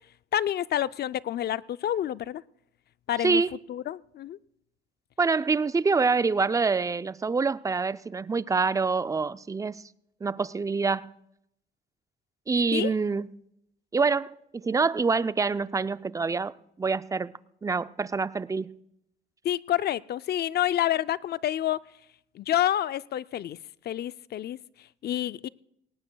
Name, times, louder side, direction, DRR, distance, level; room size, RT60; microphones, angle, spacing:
voice 1, 0.3-2.4 3.1-3.4 3.7-4.4 12.7-12.9 19.4-21.8 22.3-23.6 23.8-24.6 25.0-25.5, left 12 dB, 55° left, 0.4 m, -28 dB
voice 2, 5.2-9.8 10.2-11.1 12.5-13.3 13.9-17.3 17.6-18.7, right 4 dB, 15° right, 0.4 m, -26 dB
18.5 x 18.5 x 2.3 m
cardioid pair, 90°, 20 cm